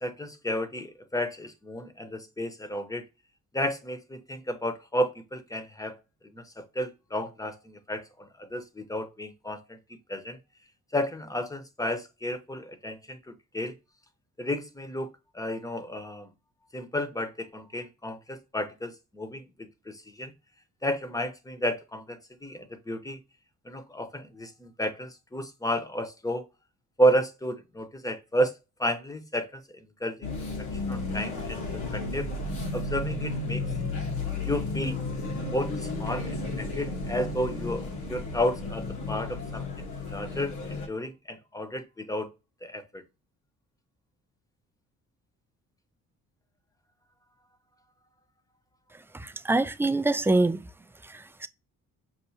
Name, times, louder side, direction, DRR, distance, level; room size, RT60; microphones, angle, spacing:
voice 1, 0.0-3.0 3.5-6.0 6.3-9.8 10.1-10.4 10.9-13.7 14.4-15.1 15.3-16.3 16.7-20.3 20.8-23.2 23.6-26.5 27.0-30.3 30.7-31.6 31.9-32.3 32.7-33.6 34.4-35.0 35.5-39.7 40.1-42.3 42.6-43.0, equal, 10° left, 0.8 m, -32 dB
sound 1, 30.2-40.9, left 3 dB, 80° left, 1.3 m, -33 dB
voice 2, 49.1-50.6 51.0-51.5, right 2 dB, 10° right, 0.3 m, -25 dB
5.8 x 2.6 x 2.7 m
cardioid pair, 90°, 30 cm